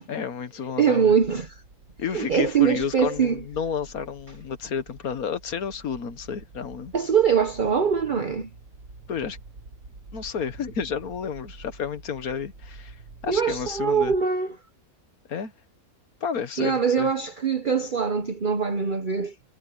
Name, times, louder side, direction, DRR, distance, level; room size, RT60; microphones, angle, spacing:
voice 1, 0.1-1.1 2.0-6.9 9.1-9.4 10.1-13.0 13.2-14.1 15.3-15.5 16.2-17.1, left 7 dB, 80° left, 1.7 m, -31 dB
voice 2, 0.8-1.6 2.1-3.4 6.9-8.5 13.3-14.6 16.6-19.3, right 6 dB, 40° right, 1.0 m, -23 dB
sound 1, 1.0-14.3, right 3 dB, 80° right, 2.6 m, -47 dB
omnidirectional pair, 1.5 m